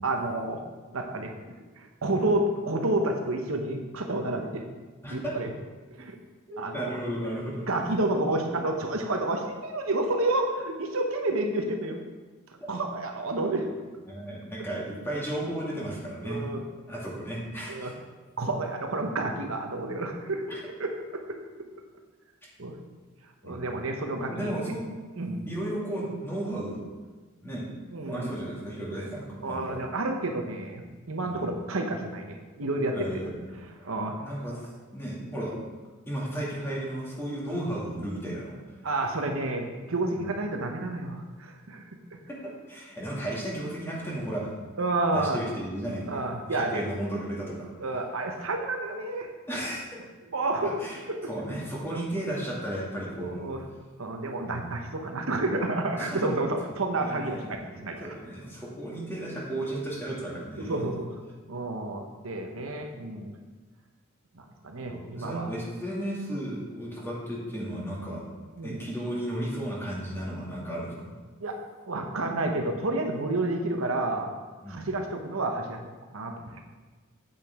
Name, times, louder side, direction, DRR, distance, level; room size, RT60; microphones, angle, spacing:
voice 1, 0.0-0.6 0.9-1.3 1.8-4.7 5.1-5.5 5.9-6.2 6.6-7.0 7.7-12.0 12.7-13.7 16.2-16.6 17.7-17.9 18.4-20.4 20.8-21.4 22.6-22.8 23.4-24.5 25.2-25.4 27.9-28.3 29.0-29.1 29.4-33.2 33.8-34.3 38.8-41.8 42.1-42.2 44.8-45.4 46.1-46.8 47.8-49.3 50.3-50.8 51.1-51.3 51.9-52.0 53.2-53.6 54.0-58.1 60.6-61.1 61.5-63.3 64.4-65.5 68.6-68.8 71.4-71.6 71.9-74.3 74.7-75.8 76.1-76.5, right 2 dB, 70° right, 3 dB, 0.9 m, -30 dB
voice 2, 5.0-5.3 6.5-7.7 12.6-12.7 14.1-16.4 16.9-17.9 20.5-20.6 23.4-23.5 24.3-24.9 25.5-26.8 27.4-27.7 28.1-29.8 31.2-31.4 32.9-33.6 34.2-34.6 34.9-35.6 36.1-38.6 40.2-40.3 42.3-44.5 45.1-47.7 49.5-49.9 50.6-51.0 51.3-53.5 54.4-54.7 56.0-56.3 57.0-60.9 64.9-68.3 68.6-71.1 74.6-74.9, right 1 dB, 10° left, -5 dB, 2.3 m, -34 dB
8.6 x 8.3 x 3.6 m, 1.3 s
head